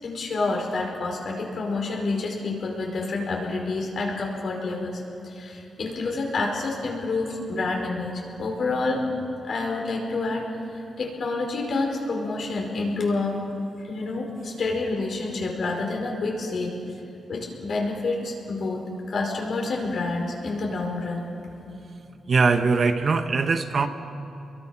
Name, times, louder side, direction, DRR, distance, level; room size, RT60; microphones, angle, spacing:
voice 1, 0.0-9.0 9.4-10.4 10.7-13.4 13.8-16.7 17.3-18.8 19.1-21.3, left 3 dB, 60° left, 0 dB, 5.0 m, -28 dB
voice 2, 22.3-23.9, right 4 dB, 45° right, 8 dB, 1.2 m, -21 dB
29.5 x 22.5 x 6.0 m, 2.9 s
wide cardioid pair, 120°, 0 cm